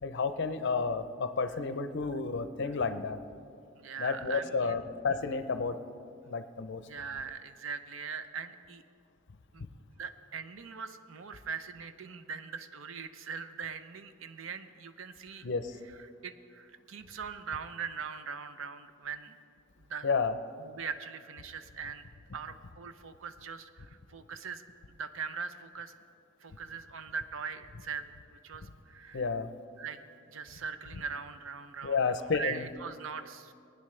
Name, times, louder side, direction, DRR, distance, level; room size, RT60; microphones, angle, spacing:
voice 1, 0.0-3.2 4.0-5.8 6.3-6.8 15.4-15.7 20.0-20.3 29.1-29.5 31.8-32.7, left 4 dB, 55° left, 10 dB, 0.6 m, -31 dB
voice 2, 3.7-4.8 6.9-8.8 9.5-9.6 10.0-15.5 15.8-19.4 19.9-20.1 20.6-22.0 22.3-24.6 24.9-26.0 26.4-29.3 29.8-30.0 30.3-33.5, right 6 dB, 65° right, 11 dB, 0.6 m, -41 dB
20.0 x 9.5 x 3.2 m, 2.3 s
head